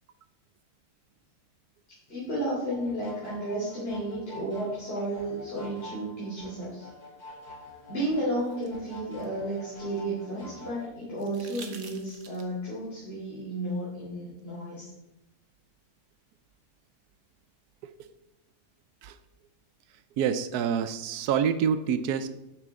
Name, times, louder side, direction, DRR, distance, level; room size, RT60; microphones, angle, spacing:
voice 1, 2.1-6.9 7.9-14.9, right 1 dB, 40° left, -9 dB, 3.7 m, -32 dB
sound 1, 2.7-10.9, left 1 dB, 80° left, 3.0 m, -47 dB
sound 2, 8.0-10.3 11.2-12.7 14.4-14.5, right 5 dB, 55° right, 1.4 m, -49 dB
voice 2, 20.2-22.3, right 7 dB, 85° right, 11 dB, 1.2 m, -27 dB
12.0 x 8.2 x 3.6 m, 0.93 s
omnidirectional pair, 1.6 m